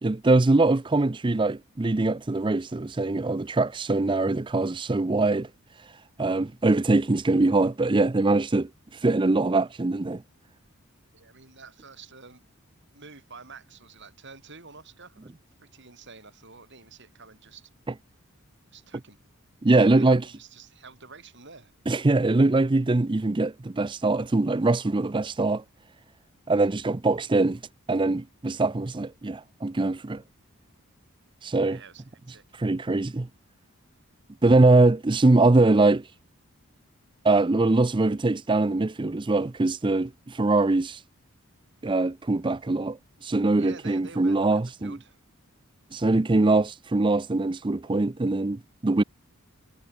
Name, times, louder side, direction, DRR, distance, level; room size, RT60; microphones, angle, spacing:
voice 1, 0.0-5.5 6.2-8.7 9.0-10.2 19.6-20.2 21.9-25.6 26.5-27.6 27.9-30.2 31.4-31.8 32.6-33.3 34.4-36.1 37.2-41.0 41.8-43.0 43.2-45.0 45.9-49.0, right 2 dB, 20° right, 0.5 m, -22 dB
voice 2, 11.1-12.4 12.9-15.3 15.6-17.7 18.7-19.2 19.7-21.7 31.6-32.4 43.6-45.2, right 4 dB, 55° right, 6.5 m, -48 dB
head